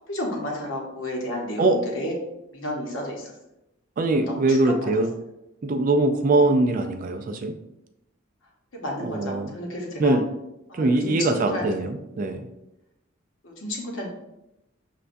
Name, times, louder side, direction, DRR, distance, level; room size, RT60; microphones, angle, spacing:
voice 1, 0.1-2.1 2.5-3.3 4.2-4.7 8.7-10.1 10.7-11.6 13.4-14.1, left 1 dB, 70° left, -1 dB, 0.9 m, -32 dB
voice 2, 4.0-5.1 5.6-7.5 9.0-9.5 10.0-10.2 10.7-12.5, right 2 dB, 40° right, 6 dB, 0.3 m, -22 dB
6.6 x 2.2 x 2.5 m, 0.88 s
head